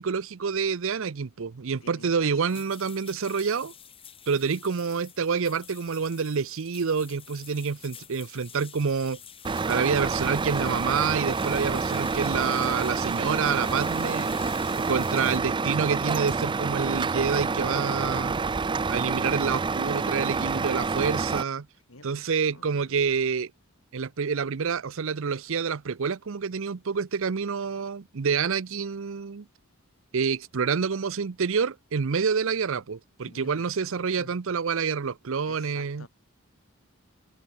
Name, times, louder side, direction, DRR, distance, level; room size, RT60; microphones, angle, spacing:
voice 1, 0.0-3.7 4.3-9.2 9.7-14.3 14.9-18.4 18.9-21.7 22.0-23.5 23.9-29.5 30.1-36.1, right 6 dB, 65° right, 0.6 m, -28 dB
voice 2, 1.8-2.7 21.9-23.0 33.2-34.6 35.4-36.1, left 2 dB, 65° left, 4.3 m, -50 dB
sound 1, 2.5-15.4, left 8 dB, 25° left, 2.4 m, -47 dB
Truck, 9.4-21.4, right 4 dB, 20° right, 0.4 m, -28 dB
open air
head